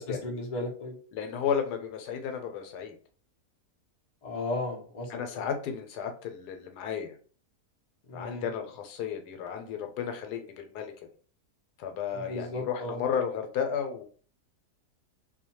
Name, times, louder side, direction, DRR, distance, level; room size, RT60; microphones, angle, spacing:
voice 1, 0.1-1.0 4.2-5.5 8.1-8.4 12.1-13.0, left 2 dB, 45° left, -2 dB, 0.5 m, -35 dB
voice 2, 1.1-2.9 5.1-7.1 8.1-10.9 11.8-14.0, left 7 dB, 80° left, 5 dB, 1.1 m, -33 dB
2.6 x 2.2 x 2.8 m, 0.41 s
omnidirectional pair, 1.7 m